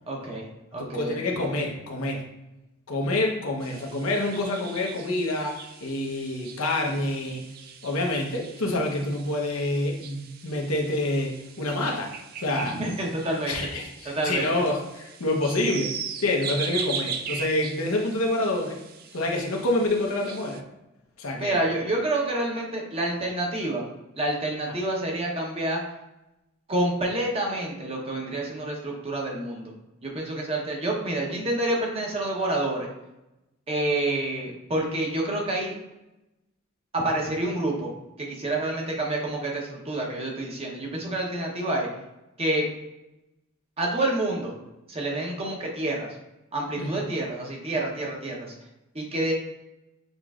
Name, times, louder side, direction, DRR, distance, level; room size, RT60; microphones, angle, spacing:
voice 1, 0.1-1.2 12.8-13.5 14.0-14.5 21.4-23.9 24.2-25.8 26.7-29.7 30.0-32.9 33.7-35.7 36.9-37.9 38.2-41.9 42.4-42.7 43.8-44.5 44.9-46.1 46.5-48.5 48.9-49.3, right 1 dB, 30° right, -1 dB, 0.9 m, -28 dB
voice 2, 0.8-2.2 2.9-7.4 7.8-12.1 12.4-12.8 13.5-15.9 16.2-18.8 19.1-20.6 21.2-21.6 46.8-47.1, left 2 dB, 90° left, 1 dB, 0.9 m, -27 dB
sound 1, 3.6-20.6, right 6 dB, 45° right, 0.3 m, -40 dB
6.6 x 3.0 x 2.4 m, 0.94 s
head